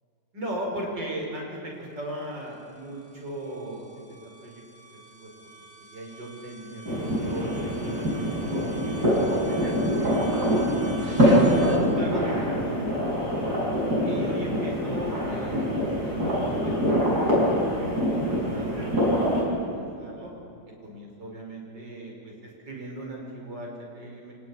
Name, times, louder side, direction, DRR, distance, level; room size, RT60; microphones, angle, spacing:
voice 1, 0.3-4.6 5.1-5.3 5.9-8.8 9.3-11.0 11.7-13.0 14.0-20.3 20.8-24.3, right 1 dB, 80° right, -1 dB, 6.1 m, -38 dB
sound 1, 2.8-11.8, right 2 dB, 45° right, 3.5 m, -43 dB
sound 2, 6.9-19.4, equal, 60° right, 7.1 m, -24 dB
26.0 x 17.5 x 10.0 m, 2.8 s
omnidirectional pair, 1.9 m